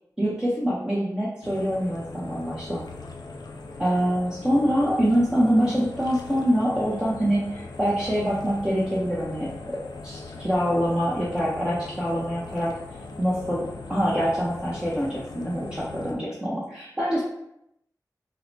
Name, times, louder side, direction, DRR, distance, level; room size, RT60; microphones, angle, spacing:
voice 1, 0.2-2.8 3.8-9.8 10.0-12.7 13.2-17.2, equal, 15° right, -6 dB, 0.7 m, -25 dB
sound 1, 1.4-16.1, left 3 dB, 75° left, 0.4 m, -40 dB
4.7 x 2.1 x 2.7 m, 0.80 s
wide cardioid pair, 65°, 7 cm